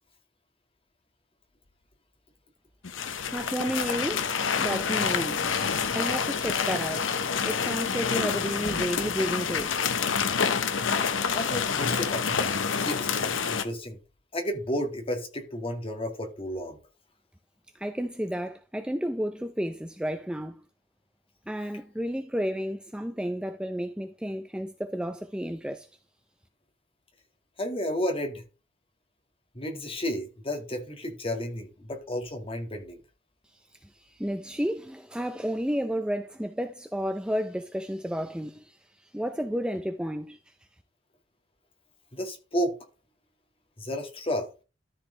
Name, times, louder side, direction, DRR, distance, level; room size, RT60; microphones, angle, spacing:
sound 1, 2.8-13.6, left 6 dB, 85° left, 0.9 m, -27 dB
voice 1, 3.3-5.6 5.9-7.1 7.4-9.8 17.7-20.6 21.5-25.9 33.5-40.4, equal, 5° right, 0.5 m, -32 dB
voice 2, 11.3-12.2 12.8-14.0 14.3-16.8 27.6-28.4 29.5-33.0 42.1-42.7 43.8-44.5, equal, 30° left, 1.9 m, -32 dB
13.5 x 4.9 x 3.3 m
head